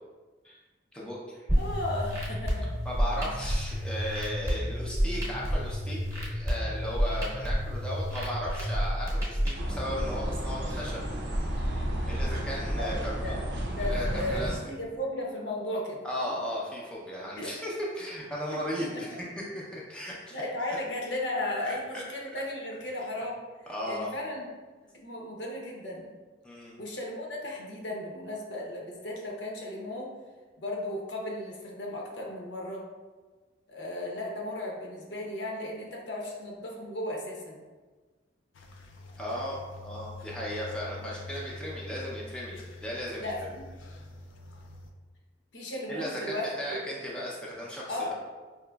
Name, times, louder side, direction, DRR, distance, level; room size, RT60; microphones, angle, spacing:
voice 1, 0.9-1.5 2.8-11.0 12.1-13.5 13.8-14.6 16.0-19.2 19.7-20.4 20.7-20.8 21.6-22.0 23.7-24.1 26.4-26.8 39.2-43.3 45.9-48.1, equal, 5° left, -5 dB, 0.5 m, -36 dB
sound 1, 1.5-9.5, equal, 15° right, 0.9 m, -30 dB
voice 2, 1.6-2.7 12.8-13.4 13.7-16.0 17.4-17.5 18.5-18.6 18.9-19.0 20.0-23.4 23.8-24.5 24.9-26.1 26.8-30.1 30.6-32.8 33.7-37.6 41.0-41.1 43.2-43.7 45.5-46.5 46.8-47.2 47.9-48.1, left 1 dB, 65° left, -1 dB, 0.8 m, -35 dB
sound 2, 9.5-14.6, equal, 70° right, 0.6 m, -31 dB
sound 3, 38.5-44.9, left 2 dB, 85° left, 0.4 m, -45 dB
4.9 x 2.9 x 2.3 m, 1.3 s
head